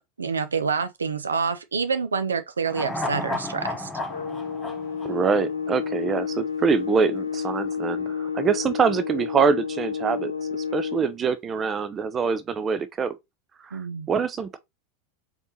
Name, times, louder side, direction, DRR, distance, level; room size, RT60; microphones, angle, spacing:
voice 1, 0.0-3.9 13.7-14.1, right 5 dB, 80° right, 0.5 m, -27 dB
sound 1, 2.7-6.1 6.4-6.5, left 2 dB, 15° left, 0.9 m, -33 dB
sound 2, 4.1-11.2, left 6 dB, 85° left, 0.4 m, -30 dB
voice 2, 5.0-13.2 13.7-13.8 14.1-14.6, right 6 dB, 25° right, 0.5 m, -25 dB
4.0 x 3.5 x 2.8 m
figure-of-eight pair, 90°, 0 cm